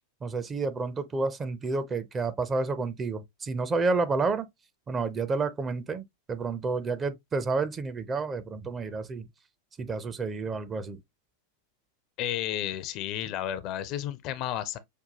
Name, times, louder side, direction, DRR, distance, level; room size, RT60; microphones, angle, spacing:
voice 1, 0.2-4.5 4.9-9.3 9.8-11.0, right 3 dB, 20° right, 0.5 m, -30 dB
voice 2, 12.2-14.8, left 11 dB, 40° left, 0.4 m, -32 dB
5.2 x 2.2 x 2.7 m
figure-of-eight pair, 90°, 0 cm